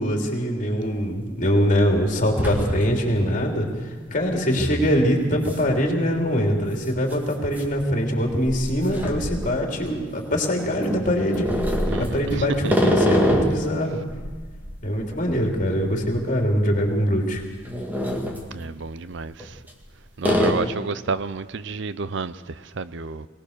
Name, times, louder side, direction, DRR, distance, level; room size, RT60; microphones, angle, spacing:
voice 1, 0.0-11.5 12.0-14.0 14.8-17.4, equal, 40° left, 3.3 m, -23 dB
sound 1, 0.8-0.9 1.4-1.8 2.1-3.2 3.5-3.6 4.6-4.8 5.4-5.6 5.9-6.0 7.0-10.0 10.6-13.7 14.1-16.4 16.7-16.9 17.4-18.4 19.3-19.9 20.2-20.5, equal, 10° right, 2.0 m, -25 dB
voice 2, 11.9-12.7 18.5-19.6 20.2-23.3, right 4 dB, 65° right, 0.6 m, -30 dB
22.5 x 18.0 x 6.7 m
head